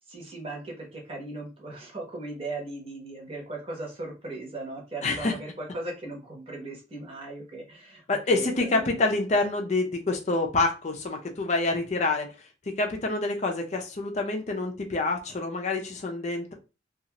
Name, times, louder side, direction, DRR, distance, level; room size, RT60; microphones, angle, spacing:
voice 1, 0.1-9.0, right 2 dB, 30° right, -1 dB, 0.9 m, -38 dB
voice 2, 5.0-5.3 8.1-12.3 12.8-16.5, left 2 dB, 40° left, 3 dB, 0.5 m, -27 dB
2.7 x 2.4 x 2.8 m, 0.31 s
head